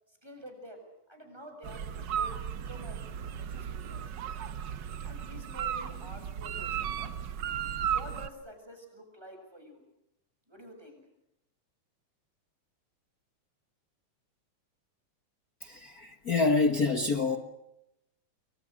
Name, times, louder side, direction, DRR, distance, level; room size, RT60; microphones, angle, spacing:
voice 1, 0.1-2.4 2.7-3.0 3.4-4.3 5.0-7.1 7.8-9.8 10.5-11.0, equal, 5° right, 4 dB, 7.1 m, -49 dB
sound 1, 1.6-8.3, right 8 dB, 75° right, 1.0 m, -35 dB
voice 2, 15.6-17.4, left 3 dB, 45° left, 7 dB, 1.2 m, -27 dB
30.0 x 23.0 x 6.5 m, 0.83 s
omnidirectional pair, 3.5 m